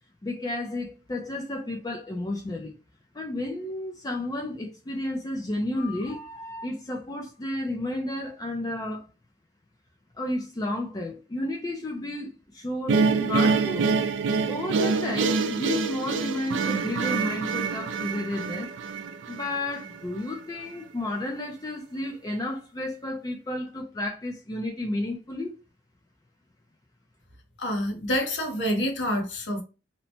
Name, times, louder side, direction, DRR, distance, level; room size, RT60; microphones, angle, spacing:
voice 1, 0.2-2.7 3.1-9.0 10.2-13.9 14.5-18.7 19.3-25.6, left 1 dB, 20° left, 0.4 m, -32 dB
sound 1, 12.9-20.0, right 4 dB, 85° right, 0.3 m, -26 dB
voice 2, 27.6-29.6, equal, 75° left, 0.9 m, -27 dB
2.9 x 2.1 x 2.8 m
head